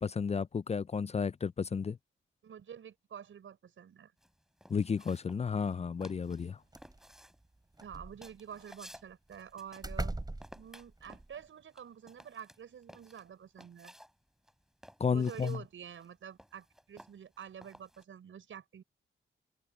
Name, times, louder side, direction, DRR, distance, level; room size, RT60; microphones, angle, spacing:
voice 1, 0.0-2.0 4.7-6.6 15.0-15.6, left 6 dB, 35° left, 0.4 m, -32 dB
voice 2, 2.4-4.1 7.8-10.1 10.6-13.9 15.1-18.8, right 8 dB, 80° right, 6.7 m, -48 dB
sound 1, 4.2-5.8 6.0-6.5 6.8-10.1 10.4-14.1 14.4-18.0, equal, ahead, 4.9 m, -56 dB
sound 2, 6.4-6.5 6.7-7.2 7.7-8.6 9.3-9.4 9.8-11.4, right 2 dB, 20° right, 4.2 m, -40 dB
cardioid pair, 75°, 20 cm